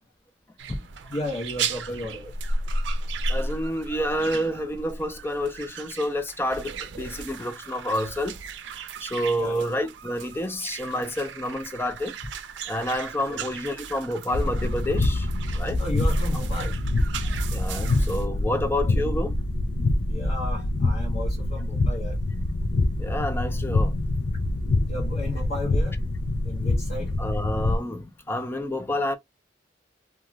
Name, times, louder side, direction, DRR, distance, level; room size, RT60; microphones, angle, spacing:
sound 1, 0.6-18.3, right 3 dB, 85° right, 0.5 m, -35 dB
voice 1, 1.1-2.3 6.8-6.9 7.9-8.0 9.4-9.7 13.3-13.4 15.8-16.7 18.6-19.2 20.1-22.2 24.9-26.0 26.4-27.1, left 1 dB, 40° left, 0.8 m, -34 dB
voice 2, 3.3-8.3 9.0-12.1 12.7-15.3 15.5-15.8 17.5-19.3 23.0-24.0 27.2-29.2, left 1 dB, 15° left, 0.4 m, -29 dB
sound 2, 14.3-27.8, left 2 dB, 75° left, 0.5 m, -25 dB
2.4 x 2.2 x 3.0 m
head